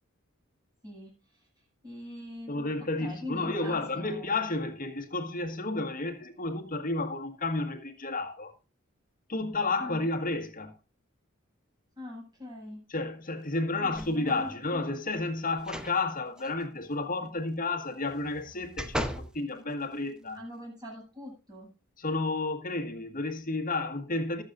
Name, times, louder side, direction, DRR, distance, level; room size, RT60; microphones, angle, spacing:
voice 1, 1.8-4.3 9.8-10.1 12.0-12.9 13.8-14.8 20.3-21.7, left 1 dB, 20° right, 7.9 m, -43 dB
voice 2, 2.5-8.5 9.3-10.8 12.9-20.4 22.0-24.4, left 2 dB, 40° left, 1.8 m, -31 dB
sound 1, 13.9-14.5 15.6-16.0 16.4-16.5 18.1-19.3 19.9-20.0, equal, 5° right, 0.8 m, -36 dB
20.5 x 7.5 x 2.6 m
head